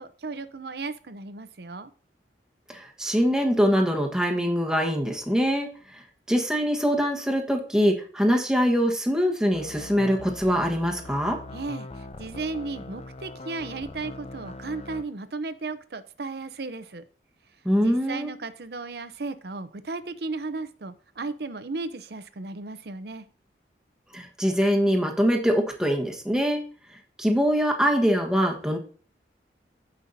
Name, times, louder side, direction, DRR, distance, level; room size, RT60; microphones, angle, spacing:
voice 1, 0.0-1.9 11.5-17.0 17.8-23.2, right 3 dB, 65° right, 12 dB, 0.7 m, -35 dB
voice 2, 2.7-11.4 17.6-18.3 24.1-26.6 26.9-28.8, equal, 5° right, 2 dB, 1.3 m, -23 dB
sound 1, 9.5-15.0, left 2 dB, 35° left, 0.5 m, -41 dB
15.0 x 5.5 x 2.7 m, 0.41 s
head